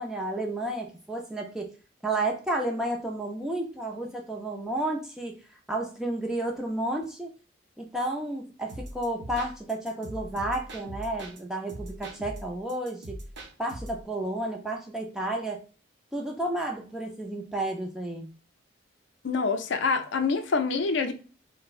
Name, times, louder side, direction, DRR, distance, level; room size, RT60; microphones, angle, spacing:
voice 1, 0.0-1.7 2.0-7.3 7.8-13.2 13.6-15.6 16.1-18.3, right 1 dB, 5° right, 0.4 m, -31 dB
sound 1, 8.7-11.4 11.7-14.0, right 1 dB, 70° right, 0.7 m, -41 dB
voice 2, 19.2-21.1, left 4 dB, 65° left, 0.4 m, -26 dB
4.4 x 2.1 x 2.4 m
head